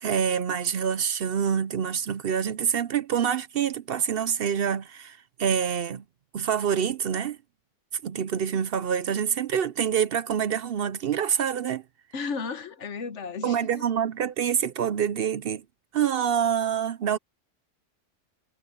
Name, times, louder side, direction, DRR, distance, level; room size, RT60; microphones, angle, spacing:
voice 1, 0.0-6.0 6.3-7.4 8.0-11.8 13.4-15.6 15.9-17.2, right 8 dB, 60° right, 0.7 m, -26 dB
voice 2, 12.1-13.8, left 5 dB, 75° left, 1.4 m, -34 dB
omnidirectional pair, 1.2 m